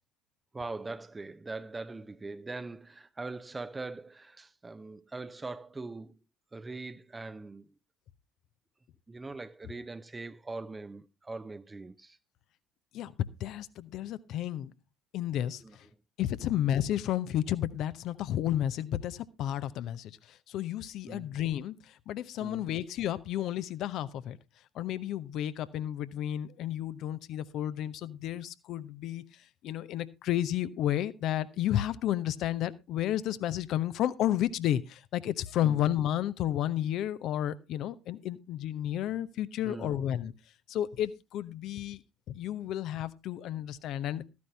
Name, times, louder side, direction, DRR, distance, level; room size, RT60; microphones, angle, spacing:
voice 1, 0.5-6.2 6.5-7.7 9.1-12.2 15.6-15.8 16.4-16.6 21.1-21.3 22.4-22.7 35.6-35.8 39.6-40.0, right 3 dB, 20° right, 0.6 m, -41 dB
voice 2, 12.9-14.7 15.1-15.6 16.2-24.4 24.7-29.2 29.6-40.3 40.7-42.0 42.3-44.2, left 12 dB, 55° left, 0.7 m, -32 dB
14.0 x 9.6 x 3.3 m
figure-of-eight pair, 55°, 0 cm